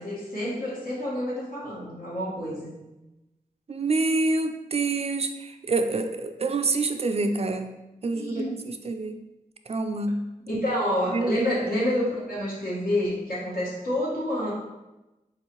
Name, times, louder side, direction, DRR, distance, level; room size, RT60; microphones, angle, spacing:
voice 1, 0.0-2.7 8.1-8.7 10.5-14.5, left 1 dB, 70° left, -6 dB, 1.4 m, -28 dB
voice 2, 3.7-7.7 8.0-9.2 9.7-10.2 11.1-11.6, right 3 dB, 45° right, 7 dB, 0.4 m, -27 dB
4.0 x 2.7 x 2.9 m, 1.0 s
cardioid pair, 40°, 15 cm